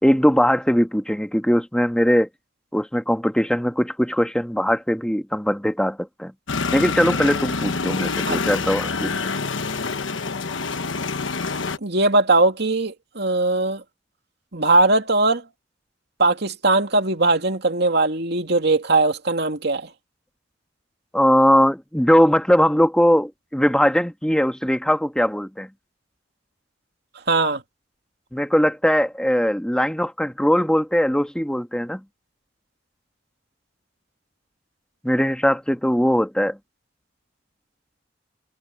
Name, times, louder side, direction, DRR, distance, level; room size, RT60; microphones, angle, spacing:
voice 1, 0.0-2.3 2.7-6.3 6.7-9.2 21.1-25.7 28.3-32.0 35.0-36.6, equal, 5° left, 1.4 m, -20 dB
sound 1, 6.5-11.8, left 4 dB, 85° left, 1.3 m, -26 dB
voice 2, 11.8-13.8 14.5-15.4 16.2-19.9 27.3-27.6, right 2 dB, 60° right, 2.6 m, -20 dB
head